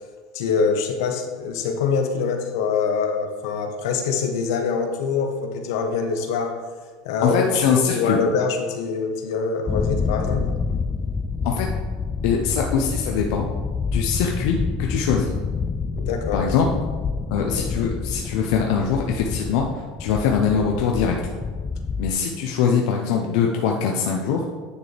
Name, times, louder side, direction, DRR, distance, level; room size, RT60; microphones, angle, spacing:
voice 1, 0.3-6.6 7.0-10.5 16.0-16.6, left 5 dB, 85° left, 4 dB, 1.1 m, -24 dB
voice 2, 7.2-8.2 11.4-11.8 12.2-13.5 13.9-15.3 16.3-16.7 17.3-19.7 20.0-21.2 22.0-24.4, left 6 dB, 70° left, 1 dB, 0.8 m, -22 dB
sound 1, 9.7-22.1, left 4 dB, 15° left, 0.3 m, -28 dB
9.7 x 6.7 x 3.4 m, 1.5 s
supercardioid pair, 150°, 2 cm